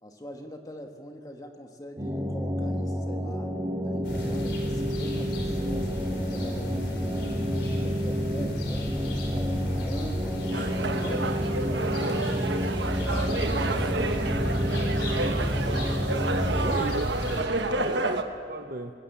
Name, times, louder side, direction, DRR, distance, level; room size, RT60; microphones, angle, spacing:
voice 1, 0.0-3.5 3.8-7.4 7.8-10.4 10.9-11.3 11.6-12.5 16.4-16.8 17.3-18.3, equal, 20° left, 4 dB, 1.5 m, -43 dB
sound 1, 2.0-16.8, equal, 20° right, 1.3 m, -30 dB
sound 2, 4.0-17.4, equal, 75° left, 3.5 m, -33 dB
sound 3, 10.5-18.2, right 2 dB, 80° right, 1.1 m, -30 dB
voice 2, 11.6-12.0 13.3-13.9 16.5-17.0 17.8-18.2 18.5-18.9, right 2 dB, 50° right, 6 dB, 0.8 m, -37 dB
21.0 x 14.5 x 8.4 m, 2.3 s
head